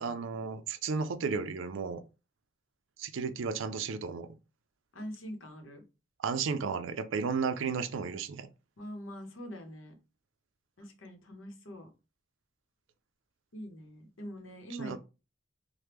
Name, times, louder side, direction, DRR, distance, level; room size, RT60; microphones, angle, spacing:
voice 1, 0.0-2.0 3.0-4.3 6.2-8.5 14.8-15.0, right 5 dB, 75° right, 0.4 m, -33 dB
voice 2, 4.9-5.8 8.8-10.0 10.8-11.9 13.5-15.0, equal, 80° left, 0.8 m, -44 dB
3.4 x 2.1 x 3.0 m
head